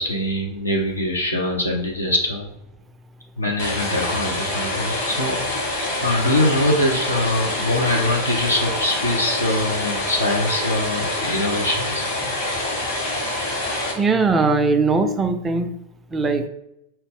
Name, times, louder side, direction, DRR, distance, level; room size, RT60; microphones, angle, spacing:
voice 1, 0.0-2.5 3.4-5.4 6.0-12.1, left 1 dB, 85° left, -1 dB, 0.6 m, -23 dB
sound 1, 3.6-13.9, left 1 dB, 60° left, 1.2 m, -26 dB
voice 2, 14.0-15.7 16.1-16.4, right 3 dB, 15° right, 6 dB, 0.4 m, -19 dB
5.7 x 2.0 x 3.6 m, 0.82 s
figure-of-eight pair, 90°, 0 cm